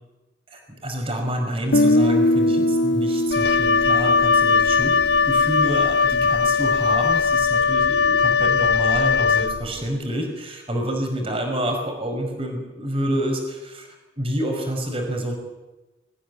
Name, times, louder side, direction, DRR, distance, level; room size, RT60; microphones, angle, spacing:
voice 1, 0.5-4.9 5.3-15.4, equal, 30° right, 3 dB, 5.5 m, -28 dB
Guitar, 1.7-5.7, left 1 dB, 85° left, 1.2 m, -22 dB
Wind instrument woodwind instrument, 3.3-9.9, left 5 dB, 60° left, 0.8 m, -19 dB
24.5 x 16.0 x 9.6 m, 1.1 s
head